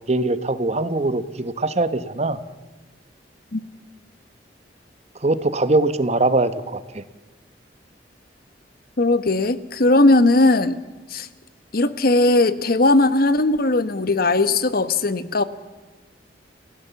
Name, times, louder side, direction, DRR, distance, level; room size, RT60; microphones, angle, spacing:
voice 1, 0.1-2.4 5.2-7.0, right 2 dB, 40° right, 13 dB, 1.1 m, -22 dB
voice 2, 9.0-10.8 11.1-11.3 11.7-15.4, left 2 dB, 55° left, 13 dB, 1.1 m, -18 dB
29.5 x 16.5 x 7.0 m, 1.3 s
head